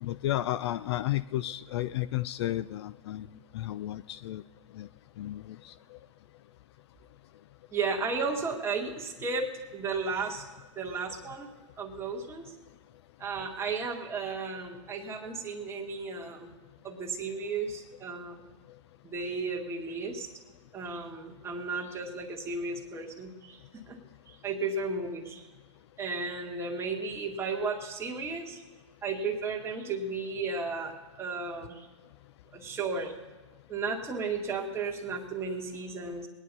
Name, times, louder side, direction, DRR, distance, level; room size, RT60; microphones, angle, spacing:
voice 1, 0.0-3.3 3.5-4.4 4.7-4.9 5.2-6.0, left 14 dB, 55° left, 16 dB, 0.5 m, -33 dB
voice 2, 7.7-10.5 10.8-11.5 11.8-12.5 13.2-16.5 16.8-18.4 19.0-20.3 20.7-24.0 24.3-25.5 26.0-28.6 29.0-31.9 32.5-33.1 33.7-36.3, right 4 dB, 15° right, 0 dB, 2.1 m, -34 dB
20.5 x 10.0 x 5.4 m, 1.3 s
hypercardioid pair, 130°, 17 cm